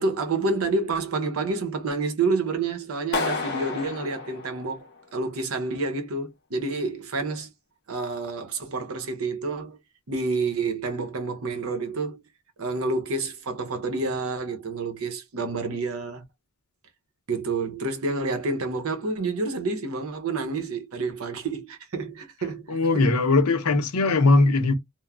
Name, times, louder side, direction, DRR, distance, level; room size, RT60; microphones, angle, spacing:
voice 1, 0.0-7.5 7.9-9.8 10.1-12.2 12.6-16.2 17.3-23.2, right 3 dB, 75° right, 0.7 m, -29 dB
Clapping, 3.1-5.2, left 4 dB, 50° left, 0.6 m, -31 dB
voice 2, 22.7-24.7, left 3 dB, 90° left, 0.6 m, -20 dB
3.0 x 2.0 x 2.3 m
head